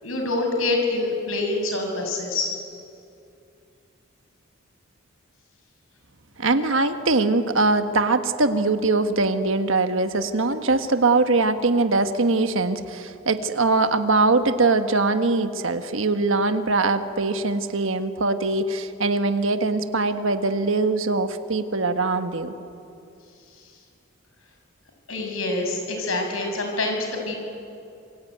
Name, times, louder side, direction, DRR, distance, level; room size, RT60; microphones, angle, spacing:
voice 1, 0.0-2.5 23.5-23.6 25.1-27.3, left 2 dB, 85° left, 3 dB, 6.7 m, -26 dB
voice 2, 6.4-22.5, right 3 dB, 70° right, 8 dB, 1.5 m, -22 dB
27.5 x 22.5 x 9.4 m, 2.6 s
head